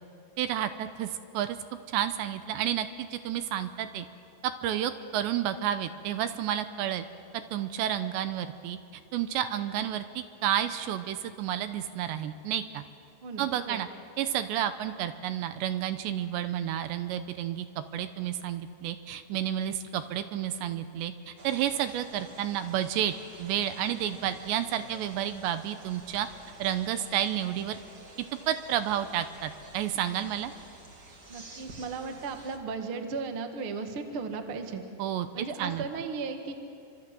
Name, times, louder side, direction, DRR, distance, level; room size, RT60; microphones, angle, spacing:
voice 1, 0.4-1.6 1.9-4.1 4.4-7.1 7.5-8.8 9.1-12.8 13.4-13.9 14.2-17.7 17.9-26.3 26.6-27.8 28.5-30.5 35.0-35.8, right 11 dB, 80° right, 10 dB, 2.9 m, -31 dB
voice 2, 13.2-13.8 31.3-34.8 35.3-36.5, right 4 dB, 55° right, 5 dB, 1.5 m, -36 dB
sound 1, 21.4-32.6, right 2 dB, 30° right, 2.0 m, -50 dB
28.5 x 25.5 x 7.7 m, 2.5 s
omnidirectional pair, 5.3 m